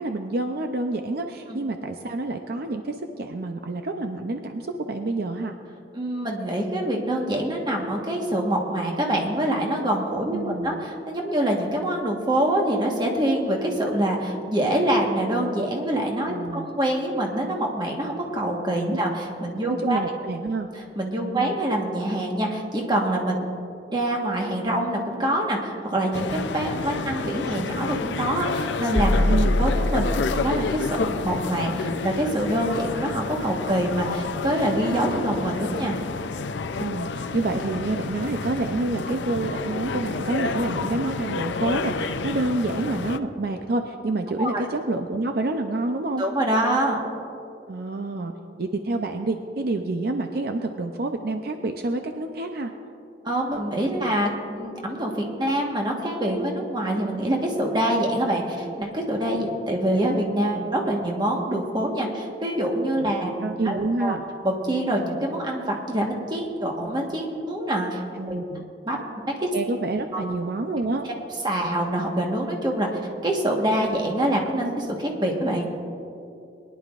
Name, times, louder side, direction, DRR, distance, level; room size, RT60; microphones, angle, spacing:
voice 1, 0.0-5.5 10.3-10.8 16.3-16.7 18.9-19.0 19.7-20.7 21.3-21.6 27.0-27.2 29.3-29.6 36.8-46.2 47.7-48.3 48.6-52.7 59.4-59.5 63.0-63.1 63.4-64.2 68.2-68.7 69.5-71.1, right 2 dB, 60° right, 5 dB, 0.5 m, -28 dB
voice 2, 5.9-20.0 21.0-23.4 23.9-29.2 29.6-36.0 44.4-44.7 46.2-47.0 53.2-63.3 63.6-64.1 64.4-68.0 68.3-68.4 68.8-69.0 69.4-69.5 70.1-70.2 71.4-72.9 73.2-75.7, right 1 dB, 25° right, 0 dB, 1.3 m, -25 dB
sound 1, 26.1-43.2, left 4 dB, 85° left, 0.5 m, -30 dB
sound 2, 28.9-30.8, left 1 dB, 45° left, 1.5 m, -23 dB
21.5 x 10.5 x 2.5 m, 2.7 s
head